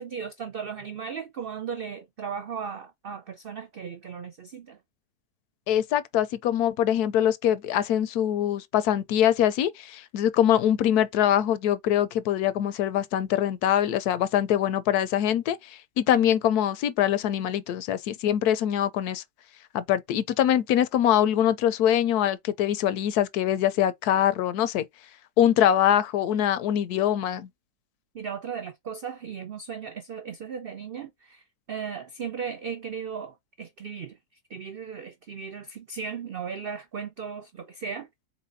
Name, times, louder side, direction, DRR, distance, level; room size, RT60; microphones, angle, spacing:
voice 1, 0.0-4.8 28.1-31.4 31.7-34.2 34.5-38.1, right 6 dB, 85° right, 0.5 m, -36 dB
voice 2, 5.7-19.2 19.7-24.8 25.4-27.5, left 10 dB, 75° left, 1.1 m, -23 dB
4.1 x 4.1 x 2.6 m
omnidirectional pair, 1.7 m